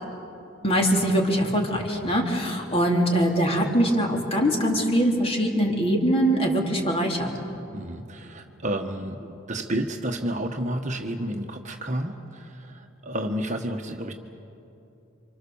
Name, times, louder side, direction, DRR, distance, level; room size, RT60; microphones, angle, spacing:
voice 1, 0.6-7.3, equal, 30° left, 1 dB, 3.4 m, -22 dB
voice 2, 7.7-14.1, right 1 dB, 35° right, 4 dB, 1.4 m, -31 dB
29.0 x 26.0 x 7.2 m, 2.8 s
head